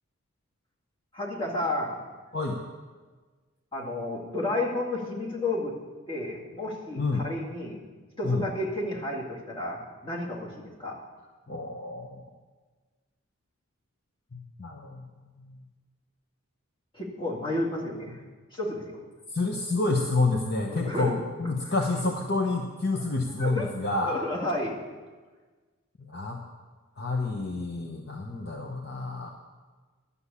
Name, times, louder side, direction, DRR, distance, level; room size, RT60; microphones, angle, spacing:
voice 1, 1.1-2.0 3.7-5.7 6.1-7.8 8.2-10.5 10.8-11.0 16.9-18.2 18.5-19.0 20.6-21.1 23.4-23.7 24.0-24.7, left 1 dB, 25° left, -4 dB, 2.2 m, -31 dB
voice 2, 11.5-12.2 14.3-15.0 15.4-15.6 19.3-24.2 26.1-26.4 27.0-29.3, left 3 dB, 50° left, 1 dB, 0.9 m, -29 dB
11.5 x 7.0 x 8.3 m, 1.4 s
head